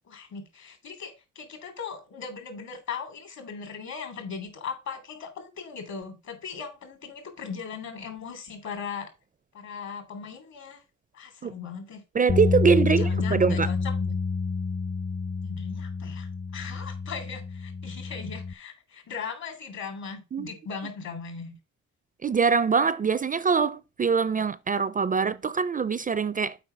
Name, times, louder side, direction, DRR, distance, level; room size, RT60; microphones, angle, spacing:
voice 1, 0.0-9.1 9.5-10.8 11.1-12.0 12.9-14.1 15.4-21.6, left 6 dB, 65° left, 3.1 m, -38 dB
voice 2, 12.1-13.7 20.3-20.5 22.2-26.6, right 5 dB, 30° right, 0.4 m, -23 dB
sound 1, 12.3-18.5, left 4 dB, 30° left, 0.6 m, -28 dB
7.7 x 4.7 x 5.7 m
cardioid pair, 90°, 30 cm